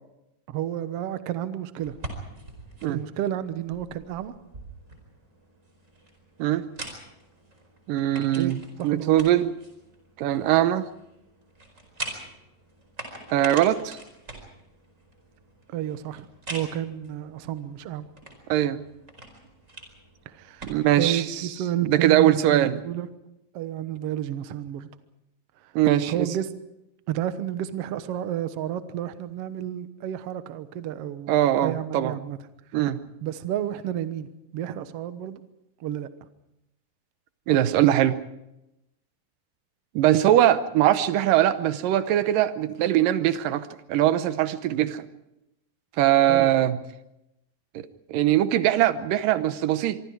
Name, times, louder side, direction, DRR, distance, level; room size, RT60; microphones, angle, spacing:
voice 1, 0.5-1.9 2.9-4.3 8.3-9.2 10.5-10.7 15.7-18.1 20.2-23.1 23.5-24.9 25.6-25.7 26.1-26.5 27.1-31.4 31.6-32.4 33.2-35.4 35.8-36.1 46.3-46.5, right 11 dB, 60° right, 11 dB, 1.7 m, -31 dB
sound 1, 1.8-21.3, right 2 dB, 20° right, 4.8 m, -44 dB
voice 2, 7.9-9.6 10.2-10.9 13.3-14.0 18.5-18.8 20.6-21.2 21.9-22.8 25.8-26.3 31.3-32.1 32.7-33.0 37.5-38.2 40.0-45.1 46.0-46.8 47.8-50.0, right 12 dB, 80° right, 12 dB, 2.6 m, -21 dB
25.5 x 24.0 x 4.7 m, 0.87 s
omnidirectional pair, 3.9 m